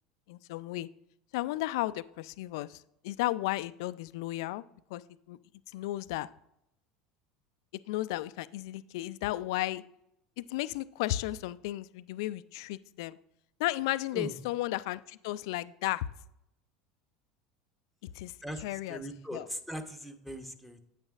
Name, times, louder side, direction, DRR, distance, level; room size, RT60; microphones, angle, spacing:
voice 1, 0.3-0.9 1.3-2.8 3.0-4.6 4.9-5.0 5.3-5.4 5.7-6.3 7.9-9.8 10.4-13.2 13.6-16.1 18.2-18.3 18.6-19.0 19.3-19.5, left 16 dB, 70° left, 16 dB, 0.3 m, -34 dB
voice 2, 18.4-20.9, equal, ahead, 5 dB, 1.0 m, -40 dB
8.9 x 8.9 x 2.5 m, 0.79 s
hypercardioid pair, 75°, 3 cm